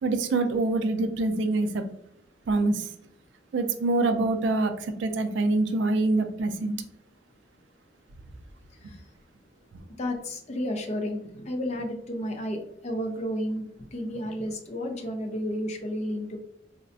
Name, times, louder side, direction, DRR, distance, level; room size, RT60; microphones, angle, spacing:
voice 1, 0.0-1.8 2.5-2.9 3.5-6.7, right 2 dB, 75° right, 0.4 m, -25 dB
voice 2, 10.0-13.6 13.9-16.4, equal, 35° left, 0.5 m, -32 dB
3.9 x 2.1 x 2.6 m
head